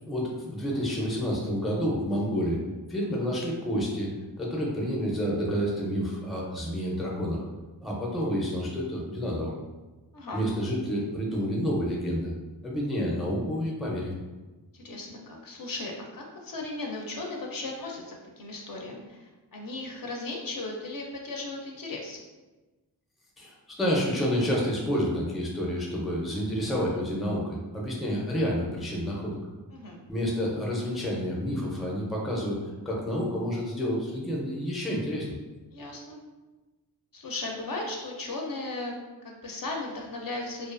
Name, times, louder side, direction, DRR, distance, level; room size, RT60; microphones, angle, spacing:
voice 1, 0.1-2.6 2.9-7.4 7.8-9.5 10.3-12.3 12.6-14.1 23.4-29.4 30.1-32.6 32.9-35.4, equal, ahead, -3 dB, 0.4 m, -29 dB
voice 2, 14.7-22.2 29.7-30.0 35.7-36.2 37.1-38.9 39.2-40.7, left 2 dB, 50° left, 0 dB, 0.5 m, -36 dB
2.5 x 2.3 x 2.4 m, 1.2 s
wide cardioid pair, 95°, 43 cm